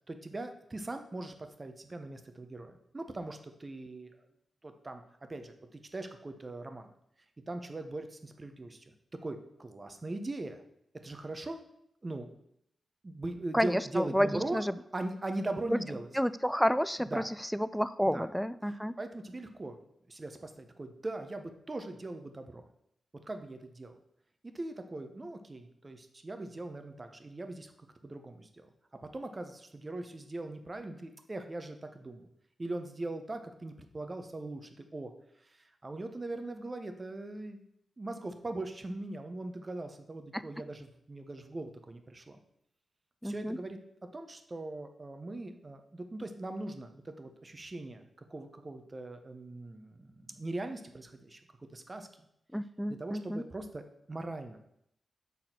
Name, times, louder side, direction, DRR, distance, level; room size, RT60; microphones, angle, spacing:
voice 1, 0.1-4.1 4.6-6.9 7.5-10.6 11.0-11.6 12.0-12.3 13.0-14.6 14.9-16.1 17.1-17.3 18.1-18.3 19.0-19.8 20.1-22.6 23.3-24.0 24.4-27.7 28.0-28.7 29.1-32.3 32.6-35.1 35.8-37.6 38.0-42.4 43.2-43.8 44.1-51.4 51.7-52.1 53.0-53.8 54.1-54.6, right 2 dB, 35° right, 7 dB, 1.0 m, -40 dB
voice 2, 13.5-14.8 15.7-15.8 16.1-18.9 40.3-40.4 43.2-43.6 52.5-53.4, equal, ahead, 15 dB, 0.4 m, -30 dB
6.7 x 4.1 x 6.0 m, 0.75 s
cardioid pair, 50°, 0 cm